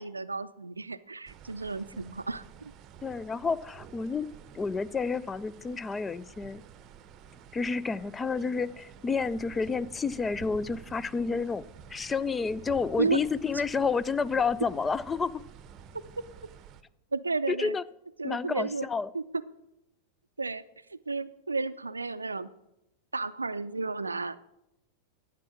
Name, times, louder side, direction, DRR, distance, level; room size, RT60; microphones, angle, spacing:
voice 1, 0.0-2.7 13.0-13.2 17.1-17.7 18.2-18.9 19.1-19.2 20.4-20.6 20.9-22.5 23.1-24.4, right 3 dB, 80° right, 14 dB, 0.4 m, -32 dB
sound 1, 1.3-16.8, right 8 dB, 35° right, 0.8 m, -50 dB
voice 2, 3.0-4.3 4.5-6.6 7.5-15.4 17.5-17.8 18.2-19.1, left 5 dB, 15° left, 18 dB, 0.4 m, -30 dB
11.5 x 8.3 x 6.4 m, 0.86 s
figure-of-eight pair, 90°, 0 cm